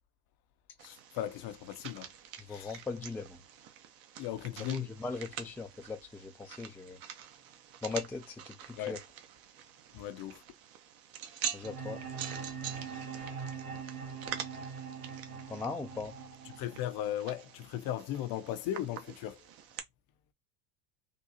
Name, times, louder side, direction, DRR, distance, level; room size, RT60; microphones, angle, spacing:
voice 1, 0.8-2.1 2.5-2.8 4.2-4.9 8.7-9.0 9.9-10.4 16.6-19.4, left 12 dB, 50° left, 0.6 m, -37 dB
sound 1, 0.8-19.8, right 9 dB, 45° right, 0.8 m, -46 dB
voice 2, 2.5-3.4 4.7-7.0 7.8-9.0 11.5-12.0 15.5-16.1, left 4 dB, 5° left, 0.3 m, -39 dB
sound 2, 11.6-17.6, right 6 dB, 90° right, 2.2 m, -42 dB
3.7 x 2.3 x 2.7 m
hypercardioid pair, 95°, 48 cm